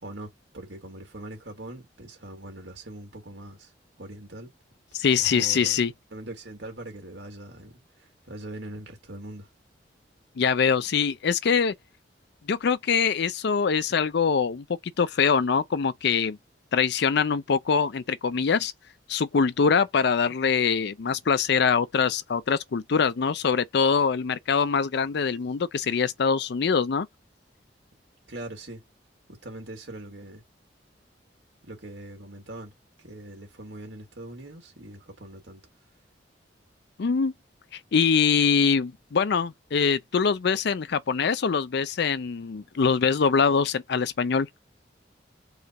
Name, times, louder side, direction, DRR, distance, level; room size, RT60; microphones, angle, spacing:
voice 1, 0.0-3.7 4.0-4.5 5.2-5.8 6.1-9.5 20.3-20.4 28.3-28.8 29.3-30.4 31.6-32.7 33.0-35.6, right 1 dB, 75° right, 2.2 m, -41 dB
voice 2, 4.9-5.9 10.4-11.7 12.5-14.6 15.0-16.4 16.7-18.7 19.1-27.1 37.0-37.3 37.9-44.5, left 6 dB, 65° left, 0.5 m, -23 dB
4.8 x 2.4 x 4.4 m
head